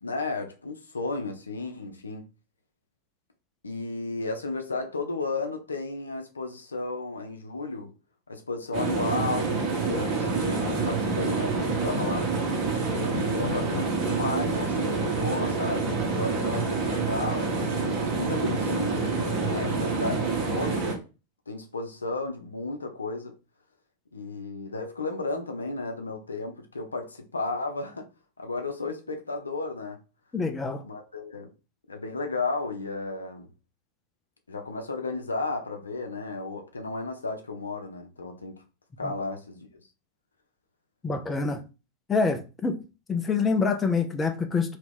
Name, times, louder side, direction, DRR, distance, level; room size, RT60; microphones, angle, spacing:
voice 1, 0.0-2.2 3.6-7.9 8.3-12.3 13.2-21.0 21.5-23.3 24.1-28.1 28.4-30.0 30.8-31.5 31.9-33.5 34.5-38.6 39.0-39.7, left 3 dB, 75° left, 0.6 m, -33 dB
sound 1, 8.7-20.9, right 4 dB, 45° right, 1.3 m, -27 dB
voice 2, 30.3-30.8 39.0-39.1 41.0-41.6 42.1-42.8 43.1-44.8, left 4 dB, 15° left, 0.5 m, -26 dB
2.9 x 2.8 x 3.5 m
figure-of-eight pair, 90°, 0 cm